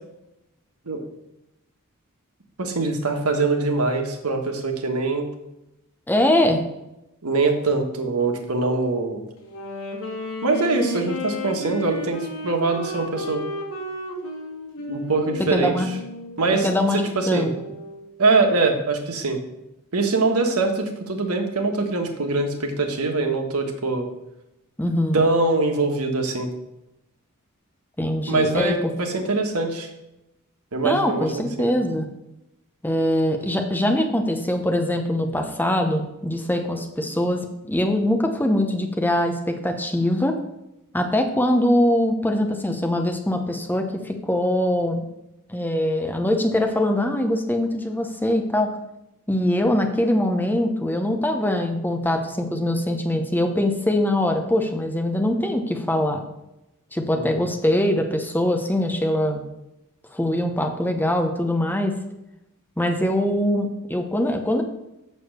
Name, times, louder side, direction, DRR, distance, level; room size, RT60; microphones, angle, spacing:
voice 1, 2.6-5.3 7.2-9.2 10.4-13.4 14.9-15.8 16.4-16.7 17.1-17.5 18.2-19.4 19.9-24.1 25.1-26.5 28.3-29.9 30.7-31.7 57.2-57.4, right 3 dB, 80° right, 4 dB, 1.4 m, -23 dB
voice 2, 6.1-6.6 15.5-15.9 16.6-17.0 17.3-17.5 24.8-25.2 28.0-28.8 29.1-29.2 30.8-32.1 32.8-40.3 40.9-45.1 45.5-48.7 49.3-56.2 56.9-59.4 60.1-62.0 62.8-64.6, left 1 dB, 10° left, 4 dB, 0.8 m, -22 dB
Wind instrument woodwind instrument, 9.4-18.1, left 1 dB, 65° left, 2.0 m, -34 dB
7.0 x 6.3 x 6.5 m, 0.90 s
head